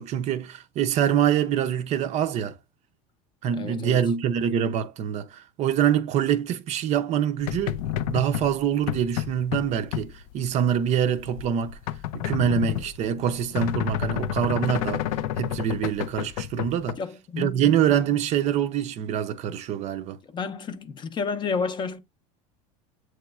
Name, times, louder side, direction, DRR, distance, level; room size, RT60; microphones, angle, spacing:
voice 1, 0.0-2.6 3.4-11.8 12.1-15.0 15.4-17.0 17.4-20.2, right 9 dB, 40° right, 0.5 m, -25 dB
voice 2, 3.5-4.0 17.0-17.8 20.3-22.0, left 5 dB, 25° left, 0.5 m, -31 dB
sound 1, 7.4-16.9, left 11 dB, 85° left, 0.4 m, -30 dB
7.8 x 3.0 x 2.2 m
supercardioid pair, 130°, 18 cm